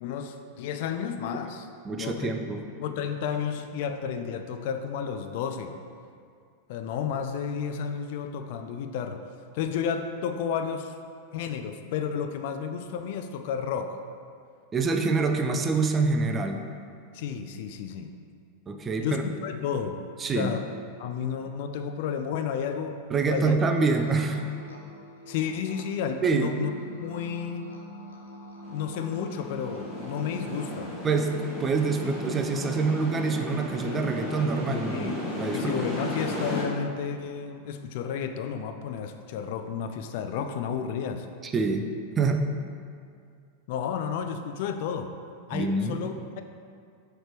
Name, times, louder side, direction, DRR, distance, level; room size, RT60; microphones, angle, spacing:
voice 1, 0.0-1.7 2.0-2.3 2.8-5.7 6.7-9.2 9.5-10.9 11.3-14.0 17.1-18.1 19.0-20.0 20.3-20.6 21.0-23.6 25.3-26.7 27.0-27.7 28.7-30.9 34.7-35.1 35.5-41.3 43.7-45.1 45.5-46.4, left 7 dB, 50° left, 7 dB, 0.3 m, -32 dB
voice 2, 1.8-2.6 14.7-16.6 18.7-19.2 20.2-20.5 23.1-24.4 26.2-26.5 31.0-35.7 41.4-41.9 42.2-42.4 45.5-46.0, right 4 dB, 20° right, 5 dB, 0.4 m, -26 dB
sound 1, 23.7-36.3, equal, 70° left, 0.7 m, -45 dB
sound 2, 28.6-36.6, left 1 dB, 15° left, 1.5 m, -35 dB
6.3 x 3.3 x 4.6 m, 2.2 s
figure-of-eight pair, 90°, 0 cm